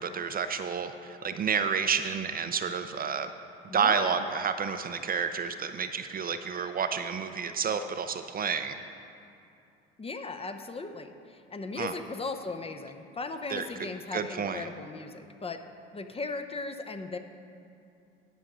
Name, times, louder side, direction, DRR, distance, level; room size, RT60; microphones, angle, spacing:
voice 1, 0.0-3.3 3.7-8.7 11.8-11.9 13.5-13.7 14.1-14.7, right 6 dB, 30° right, 8 dB, 0.5 m, -30 dB
voice 2, 3.7-4.2 10.0-15.6 15.9-17.2, left 3 dB, 20° left, 7 dB, 0.6 m, -37 dB
10.0 x 6.4 x 6.1 m, 2.6 s
hypercardioid pair, 65°, 31 cm